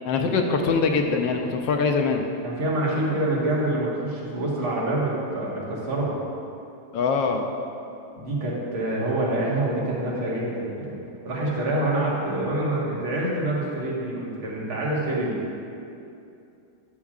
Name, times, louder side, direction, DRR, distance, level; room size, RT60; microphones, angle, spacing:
voice 1, 0.1-2.3 6.9-7.5, left 4 dB, 75° left, 3 dB, 1.2 m, -23 dB
voice 2, 2.4-6.2 8.2-11.0 11.3-15.4, right 1 dB, 85° right, -6 dB, 2.4 m, -26 dB
11.5 x 7.3 x 2.4 m, 2.7 s
omnidirectional pair, 2.2 m